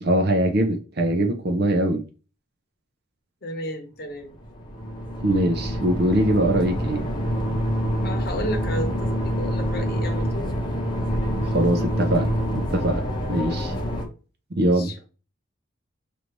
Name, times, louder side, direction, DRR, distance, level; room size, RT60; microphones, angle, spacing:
voice 1, 0.0-2.0 5.2-7.0 11.5-13.0 13.3-13.7 14.5-14.9, right 1 dB, 50° right, 0.5 m, -22 dB
voice 2, 3.4-4.3 8.0-10.5 13.5-13.7 14.7-15.0, left 1 dB, 50° left, 0.9 m, -33 dB
sound 1, 4.3-14.0, equal, 20° left, 0.8 m, -26 dB
4.9 x 2.6 x 3.1 m
head